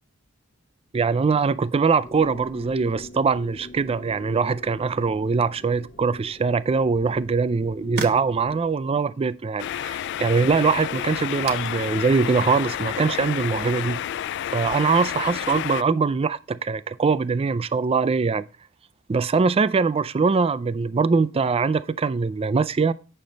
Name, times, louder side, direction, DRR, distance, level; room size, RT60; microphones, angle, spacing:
voice 1, 0.9-14.0 14.5-18.4 19.1-22.9, right 4 dB, 25° right, 0.3 m, -22 dB
sound 1, 2.0-8.7, left 1 dB, 40° left, 1.4 m, -44 dB
sound 2, 7.0-14.3, right 5 dB, 50° right, 1.2 m, -42 dB
sound 3, 9.6-15.8, left 11 dB, 55° left, 0.3 m, -30 dB
8.6 x 6.3 x 3.9 m
head